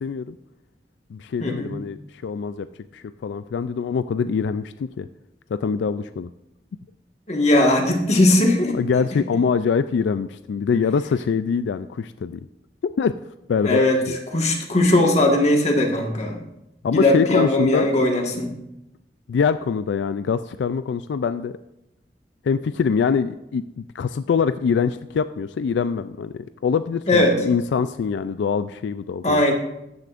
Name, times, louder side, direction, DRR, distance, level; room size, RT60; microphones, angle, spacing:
voice 1, 0.0-0.4 1.1-2.0 2.2-2.7 2.9-5.1 5.5-6.3 8.7-12.4 13.0-13.1 13.5-13.8 14.1-14.2 16.8-17.9 19.3-21.6 22.4-29.4, left 6 dB, 85° left, 12 dB, 0.3 m, -24 dB
voice 2, 1.4-1.7 7.3-8.7 13.6-14.0 14.3-16.4 16.9-18.5 27.1-27.4 29.2-29.5, left 1 dB, 40° left, 1 dB, 1.6 m, -19 dB
13.5 x 9.7 x 2.5 m, 0.88 s
head